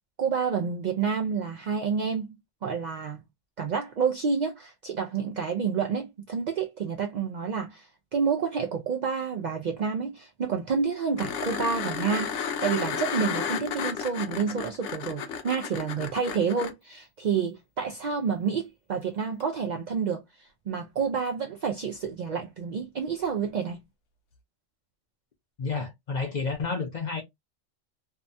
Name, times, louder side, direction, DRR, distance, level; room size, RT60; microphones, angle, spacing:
voice 1, 0.2-2.4 2.6-3.2 3.6-7.9 8.1-20.2 20.7-23.8, right 6 dB, 90° right, 0.4 m, -29 dB
sound 1, 11.2-16.7 19.4-19.5, left 7 dB, 70° left, 0.9 m, -32 dB
voice 2, 25.6-27.2, left 4 dB, 50° left, 0.6 m, -30 dB
2.7 x 2.2 x 2.6 m
omnidirectional pair, 1.3 m